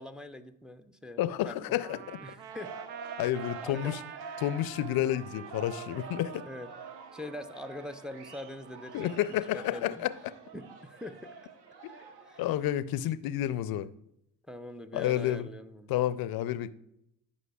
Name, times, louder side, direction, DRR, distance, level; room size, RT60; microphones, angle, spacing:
voice 1, 0.0-2.8 3.6-4.0 6.4-6.7 7.1-10.1 10.5-11.3 12.2-12.4 14.5-15.9, left 1 dB, ahead, 0.4 m, -43 dB
voice 2, 1.2-2.2 3.2-4.0 4.4-6.4 8.9-10.3 11.8-11.9 12.4-13.9 14.9-15.5 15.9-16.7, left 12 dB, 55° left, 0.5 m, -30 dB
Trumpet, 1.8-8.9, right 9 dB, 80° right, 0.5 m, -48 dB
sound 1, 2.5-12.7, right 4 dB, 60° right, 1.0 m, -47 dB
11.5 x 5.2 x 2.3 m
hypercardioid pair, 50°, 43 cm